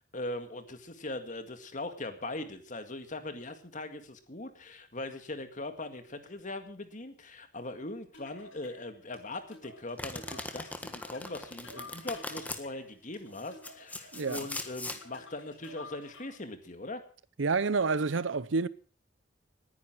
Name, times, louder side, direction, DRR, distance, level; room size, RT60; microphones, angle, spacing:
voice 1, 0.0-17.0, left 2 dB, 40° left, 2.0 m, -40 dB
sound 1, 8.1-16.5, left 2 dB, 80° left, 6.1 m, -51 dB
Domestic sounds home sounds, 10.0-12.6 13.4-15.0, left 2 dB, 10° left, 1.6 m, -40 dB
voice 2, 14.1-14.5 17.4-18.7, right 4 dB, 75° right, 0.7 m, -28 dB
19.5 x 10.0 x 6.1 m
head